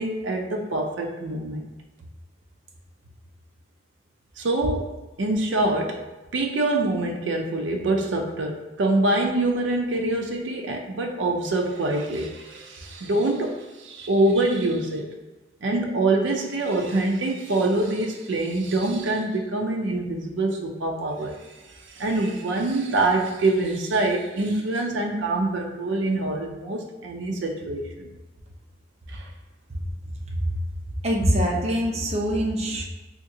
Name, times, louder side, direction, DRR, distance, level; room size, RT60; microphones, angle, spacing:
voice 1, 0.0-1.7 4.4-4.9 5.2-6.1 6.3-15.1 15.6-28.1 29.1-29.3, right 2 dB, 75° right, 1 dB, 0.5 m, -25 dB
voice 2, 31.0-32.8, equal, 35° right, -1 dB, 0.6 m, -24 dB
3.8 x 2.8 x 2.7 m, 1.1 s
head